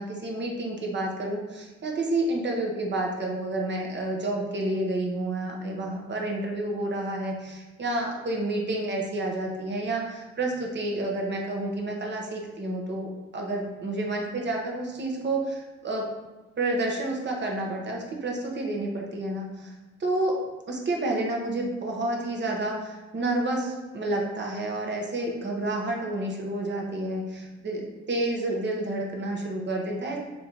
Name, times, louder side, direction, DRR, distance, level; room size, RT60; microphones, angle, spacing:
voice 1, 0.0-16.0 16.6-19.7 20.0-20.4 20.7-30.2, right 2 dB, 35° right, 0 dB, 1.0 m, -29 dB
3.3 x 2.7 x 4.3 m, 1.2 s
cardioid pair, 90°, 30 cm